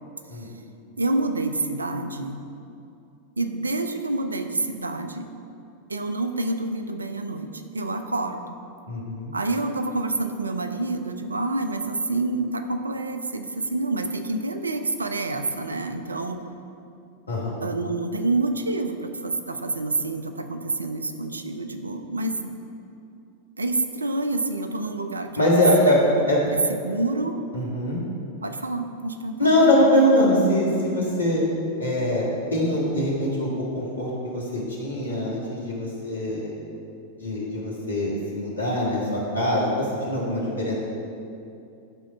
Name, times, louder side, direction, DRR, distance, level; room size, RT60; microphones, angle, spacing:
voice 1, 1.0-2.4 3.4-5.3 5.9-8.4 9.3-16.4 17.6-22.6 23.6-27.4 28.4-29.9, right 2 dB, 75° right, 8 dB, 0.5 m, -28 dB
voice 2, 8.9-9.3 17.3-17.6 25.4-26.0 26.3-26.4 27.5-28.0 29.4-31.4 31.8-32.2 32.5-36.5 37.2-40.7, left 1 dB, 80° left, -5 dB, 1.7 m, -23 dB
11.0 x 3.8 x 4.6 m, 2.6 s
figure-of-eight pair, 90°, 0 cm